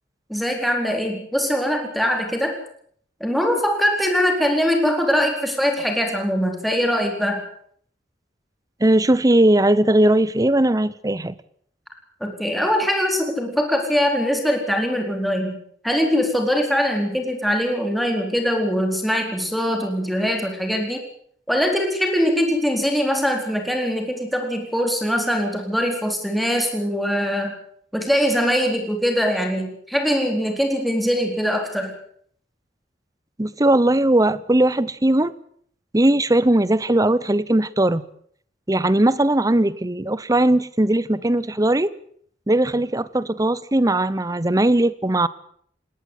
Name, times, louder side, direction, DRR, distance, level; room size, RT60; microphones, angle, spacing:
voice 1, 0.3-2.5 3.2-7.4 12.2-15.6 15.8-21.0 21.5-27.5 27.9-31.9, equal, ahead, 2 dB, 4.2 m, -22 dB
voice 2, 8.8-11.3 33.4-35.3 35.9-38.1 38.7-41.9 42.5-45.3, right 1 dB, 20° right, 18 dB, 0.9 m, -19 dB
20.0 x 18.0 x 8.2 m, 0.62 s
head